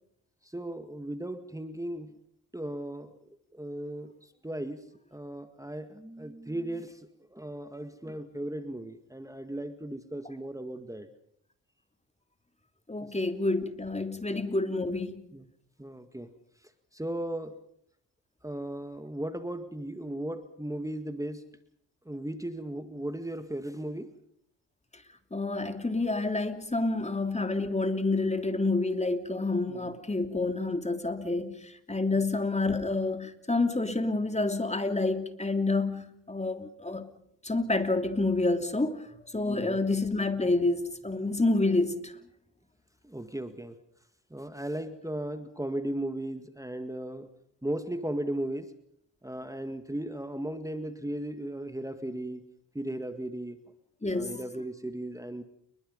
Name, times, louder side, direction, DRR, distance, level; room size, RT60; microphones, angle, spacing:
voice 1, 0.4-2.2 2.5-3.2 3.5-11.1 13.0-13.1 14.2-14.4 15.3-15.5 15.8-16.3 16.9-17.6 18.4-21.5 22.1-24.1 29.7-29.9 32.2-32.3 39.5-39.8 43.0-43.8 44.3-47.3 47.6-48.7 49.2-52.4 52.7-53.6 54.1-55.4, right 1 dB, 10° right, 2.0 m, -36 dB
voice 2, 12.9-15.2 25.3-37.1 37.4-39.1 39.3-42.1 54.0-54.4, left 2 dB, 15° left, 3.1 m, -28 dB
29.5 x 22.5 x 5.4 m
cardioid pair, 75°, 42 cm